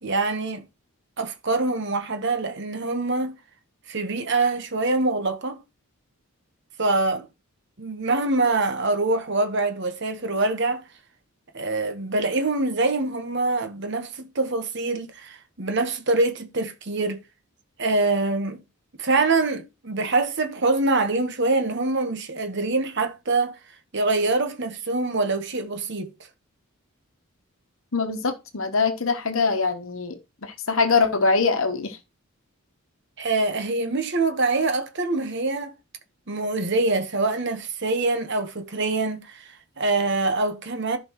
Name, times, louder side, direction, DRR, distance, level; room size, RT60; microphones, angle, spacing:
voice 1, 0.0-0.7 1.2-3.3 3.9-5.6 6.8-7.3 7.8-10.8 11.5-17.2 17.8-18.6 19.0-23.5 23.9-26.1 33.2-35.7 36.3-41.0, right 3 dB, 50° right, 1.2 m, -24 dB
voice 2, 27.9-32.0, left 4 dB, 65° left, 1.1 m, -23 dB
14.5 x 5.3 x 3.1 m
head